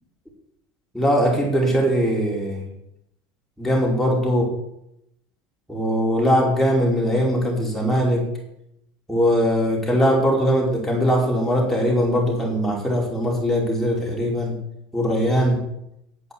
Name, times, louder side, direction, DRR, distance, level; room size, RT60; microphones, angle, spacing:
voice 1, 0.9-2.6 3.6-4.4 5.7-8.3 9.1-14.5 14.9-15.6, equal, ahead, -3 dB, 5.1 m, -20 dB
9.3 x 8.2 x 8.5 m, 0.80 s
supercardioid pair, 125°, 13 cm